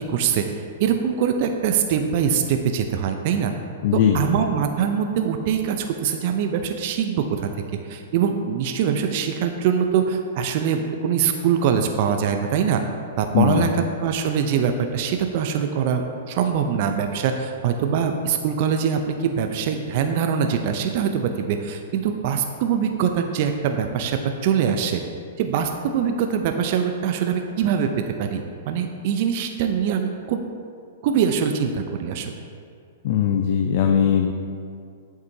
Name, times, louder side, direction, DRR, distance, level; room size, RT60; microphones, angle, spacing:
voice 1, 0.1-3.5 3.9-7.5 7.8-12.8 13.2-25.0 25.4-27.9 28.2-30.4 31.0-32.3, right 7 dB, 50° right, 5 dB, 0.5 m, -23 dB
voice 2, 3.8-4.2 13.3-13.7 33.0-34.3, left 9 dB, 55° left, 4 dB, 0.5 m, -19 dB
8.2 x 7.3 x 2.7 m, 2.4 s
hypercardioid pair, 115°, 0 cm